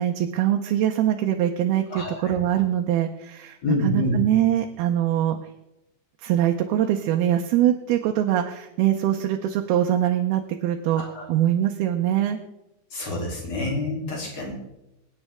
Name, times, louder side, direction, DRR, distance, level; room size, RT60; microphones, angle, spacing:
voice 1, 0.0-3.6 3.8-5.4 6.2-11.0 11.3-12.4, right 11 dB, 80° right, 4 dB, 2.6 m, -23 dB
voice 2, 1.9-2.3 3.6-4.2 11.0-11.3 12.9-14.5, left 1 dB, 40° left, -2 dB, 4.2 m, -27 dB
24.5 x 9.3 x 3.6 m, 0.93 s
omnidirectional pair, 4.7 m